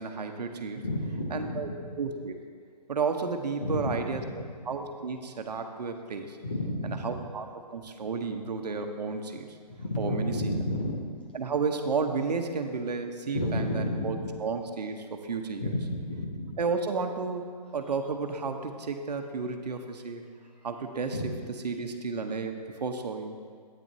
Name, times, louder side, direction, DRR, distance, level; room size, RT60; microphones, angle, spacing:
voice 1, 0.0-0.8 1.3-1.7 2.0-2.3 2.9-4.2 4.7-6.4 6.8-7.5 7.7-9.6 10.0-10.3 11.3-15.7 16.6-20.2 20.6-21.2 21.6-23.4, right 4 dB, 75° right, 5 dB, 1.0 m, -32 dB
voice 2, 0.8-2.0 3.6-4.2 6.4-7.2 9.7-11.0 13.3-14.3 15.6-16.6 20.5-20.7 21.1-21.3, left 1 dB, 15° left, -2 dB, 0.4 m, -31 dB
12.0 x 9.3 x 2.8 m, 2.1 s
hypercardioid pair, 175°, 21 cm